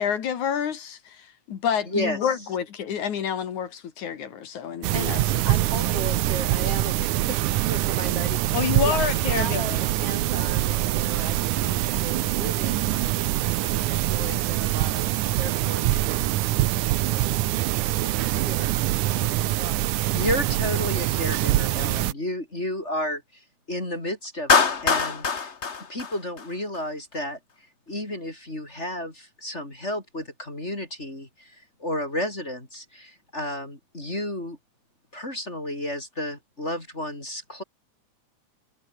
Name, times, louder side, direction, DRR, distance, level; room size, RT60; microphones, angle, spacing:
voice 1, 0.0-5.2 8.5-9.8, left 8 dB, 75° left, 3.6 m, -28 dB
voice 2, 1.9-2.5 20.1-25.5 25.9-34.6 35.1-37.6, left 1 dB, 20° left, 4.7 m, -32 dB
sound 1, 4.8-22.1, right 15 dB, 85° right, 2.4 m, -24 dB
voice 3, 4.9-8.6 8.8-9.0 9.3-17.3 18.0-19.8, right 2 dB, 50° right, 8.7 m, -37 dB
Clapping, 24.5-26.8, left 5 dB, 35° left, 1.1 m, -23 dB
omnidirectional pair, 3.5 m